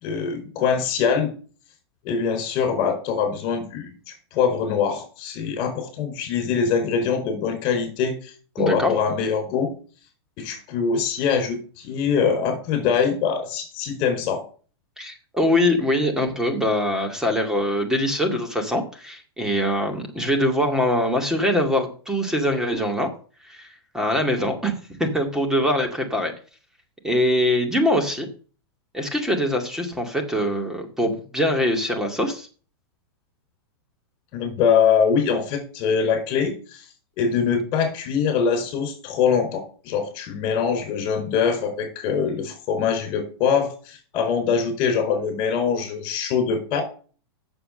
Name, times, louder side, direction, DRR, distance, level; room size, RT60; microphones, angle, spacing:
voice 1, 0.0-1.3 2.0-3.9 4.3-8.2 8.5-9.7 10.4-14.4 34.3-36.8 37.2-46.8, left 6 dB, 40° left, 6 dB, 4.8 m, -23 dB
voice 2, 8.6-8.9 15.0-23.1 23.5-23.7 23.9-26.3 27.0-28.3 28.9-32.5, left 1 dB, 5° right, 3 dB, 2.2 m, -23 dB
7.8 x 7.2 x 6.6 m, 0.39 s
hypercardioid pair, 130°, 14 cm